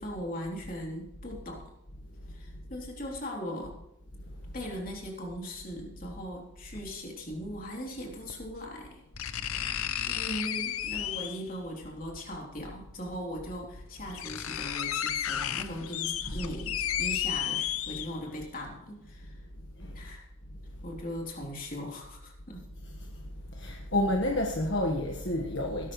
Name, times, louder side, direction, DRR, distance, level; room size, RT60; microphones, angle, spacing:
voice 1, 0.0-1.7 2.3-3.8 4.5-9.0 9.7-19.4 19.9-20.3 20.8-22.7, equal, 40° left, -1 dB, 3.5 m, -39 dB
sound 1, 6.7-6.8 8.3-8.4 9.2-11.5 12.9-13.0 13.6-13.7 14.0-18.4 18.8-18.9, left 10 dB, 75° left, 0.6 m, -33 dB
voice 2, 23.5-25.9, left 1 dB, 55° left, 1 dB, 1.6 m, -29 dB
19.5 x 12.5 x 3.3 m, 0.85 s
head